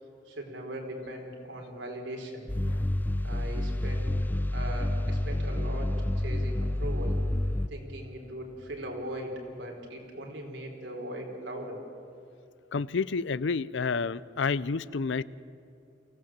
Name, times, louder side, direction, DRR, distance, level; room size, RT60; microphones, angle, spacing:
voice 1, 0.3-2.5 3.2-4.1 4.5-7.2 7.7-11.8, right 1 dB, 90° right, 1 dB, 3.9 m, -39 dB
sound 1, 2.5-7.7, left 1 dB, 10° left, 0.4 m, -29 dB
voice 2, 12.7-15.2, left 4 dB, 80° left, 19 dB, 0.5 m, -29 dB
24.0 x 16.0 x 7.4 m, 2.7 s
head